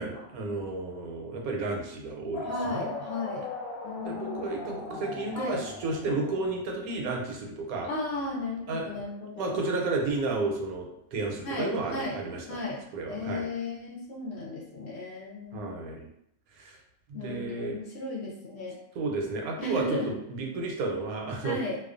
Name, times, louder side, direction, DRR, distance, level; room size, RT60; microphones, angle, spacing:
voice 1, 0.0-2.9 4.0-7.9 8.7-9.0 9.4-12.4 12.9-13.4 15.5-16.1 16.6-16.8 17.1-17.8 19.0-21.6, right 3 dB, 85° right, 1 dB, 1.0 m, -32 dB
sound 1, 2.3-6.9, left 3 dB, 85° left, 1.0 m, -39 dB
voice 2, 2.5-3.5 3.8-4.5 5.3-5.6 7.8-9.6 11.4-12.2 12.5-12.8 13.1-15.7 17.1-18.8 19.6-20.0 21.4-21.8, left 2 dB, 65° left, -4 dB, 0.7 m, -35 dB
2.4 x 2.2 x 2.4 m, 0.79 s
omnidirectional pair, 1.5 m